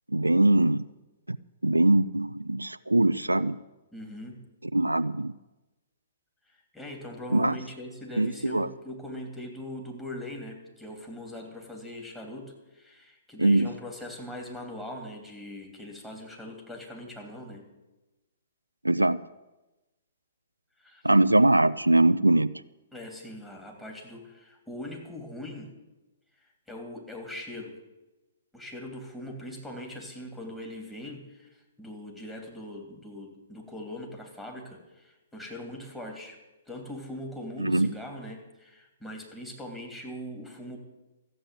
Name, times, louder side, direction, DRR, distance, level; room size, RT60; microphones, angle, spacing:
voice 1, 0.1-0.9 1.3-1.4 1.6-3.6 4.7-5.3 7.3-7.6 8.2-8.7 13.4-13.7 18.8-19.2 21.0-22.5 37.6-37.9, right 1 dB, 90° right, 14 dB, 0.4 m, -22 dB
voice 2, 3.9-4.4 6.5-17.7 20.8-21.1 22.9-25.7 26.4-27.8 28.5-36.4 36.7-40.8, left 1 dB, 5° left, -1 dB, 3.0 m, -41 dB
14.0 x 7.9 x 9.2 m, 1.1 s
figure-of-eight pair, 120°, 0 cm